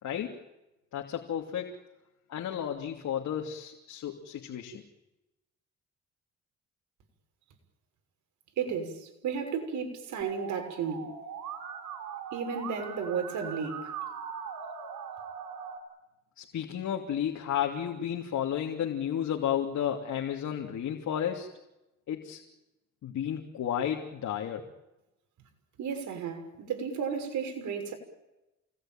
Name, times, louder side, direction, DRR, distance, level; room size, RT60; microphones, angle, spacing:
voice 1, 0.0-0.4 0.9-1.7 2.3-4.8 16.4-21.5 22.1-22.4 23.0-24.7, left 9 dB, 70° left, 2.9 m, -32 dB
voice 2, 8.6-11.2 12.3-13.9 25.8-27.9, right 6 dB, 75° right, 6.2 m, -33 dB
Musical instrument, 10.2-15.8, right 7 dB, 90° right, 5.9 m, -40 dB
28.5 x 20.5 x 9.1 m
cardioid pair, 90°, 30 cm